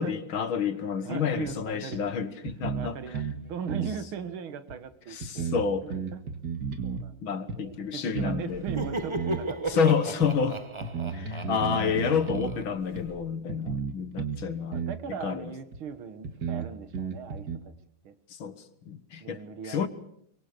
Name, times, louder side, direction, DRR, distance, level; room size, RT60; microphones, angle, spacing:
voice 1, 0.0-3.0 5.1-5.9 7.2-8.6 9.7-10.6 11.1-14.9 15.2-15.5 18.3-19.9, left 6 dB, 75° left, 12 dB, 2.2 m, -29 dB
voice 2, 1.0-2.1 2.7-5.5 5.8-6.2 6.8-10.2 11.8-11.9 14.7-17.7 18.0-18.1 19.2-19.9, right 7 dB, 80° right, 11 dB, 2.3 m, -39 dB
sound 1, 1.4-1.5 1.9-2.0 2.5-3.4 3.7-4.0 4.7-4.8 5.2-7.0 7.5-7.6 8.1-8.4 8.7-9.5 10.2-10.3 10.8-12.6 12.9-13.0 13.5-14.4 14.7-15.0 15.7-15.8 16.2-17.6, right 6 dB, 55° right, 2.4 m, -33 dB
Laughter, 8.5-13.2, right 2 dB, 20° right, 0.8 m, -36 dB
24.0 x 24.0 x 6.7 m, 0.69 s
omnidirectional pair, 2.3 m